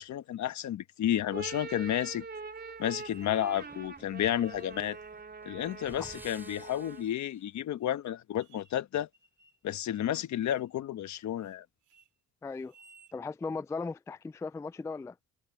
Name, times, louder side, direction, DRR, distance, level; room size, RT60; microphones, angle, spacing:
voice 1, 0.0-2.2 2.8-5.0 5.4-9.1 9.6-11.6, left 11 dB, 70° left, 1.3 m, -31 dB
sound 1, 1.2-7.2, right 4 dB, 35° right, 3.7 m, -44 dB
sound 2, 2.9-3.7 4.4-5.2 5.7-6.4 6.9-7.4 7.8-7.9 8.4-8.8 9.1-9.6 9.9-10.1 10.4-10.7 11.1-11.6 11.8-12.1 12.6-13.2, right 5 dB, 80° right, 3.8 m, -61 dB
sound 3, 3.3-7.2, right 1 dB, 5° right, 7.2 m, -54 dB
voice 2, 12.4-12.7 13.1-15.1, left 4 dB, 10° left, 0.3 m, -37 dB
cardioid pair, 90°, 30 cm